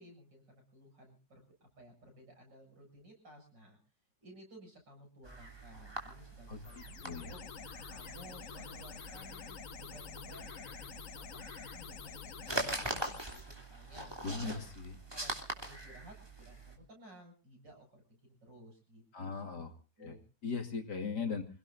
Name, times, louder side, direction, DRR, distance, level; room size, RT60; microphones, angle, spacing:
voice 1, 0.0-3.8 4.2-7.4 7.9-14.6 15.1-19.7 20.0-20.2, right 1 dB, 80° right, 1 dB, 8.3 m, -56 dB
sound 1, 5.2-16.8, right 1 dB, 15° right, 3.2 m, -43 dB
voice 2, 6.5-7.3 14.2-14.6 19.1-19.7 20.0-20.2 20.4-21.5, left 5 dB, 65° left, 5 dB, 2.9 m, -38 dB
sound 2, 6.6-13.4, left 7 dB, 50° left, 1.3 m, -48 dB
27.5 x 17.5 x 2.7 m, 0.35 s
omnidirectional pair, 1.9 m